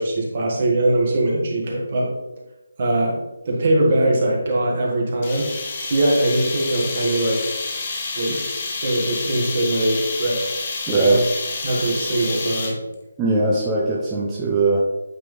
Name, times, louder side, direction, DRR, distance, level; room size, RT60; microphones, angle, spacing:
voice 1, 0.0-2.1 2.8-5.5 5.9-7.5 8.2-8.5 8.8-10.5 10.9-11.2 11.6-12.8, right 1 dB, 40° right, -2 dB, 1.7 m, -21 dB
sound 1, 5.2-12.9, left 3 dB, 35° left, 1.0 m, -29 dB
voice 2, 10.9-11.2 13.2-14.8, right 2 dB, 10° right, -6 dB, 0.6 m, -20 dB
8.5 x 3.6 x 3.3 m, 1.0 s
figure-of-eight pair, 165°, 0 cm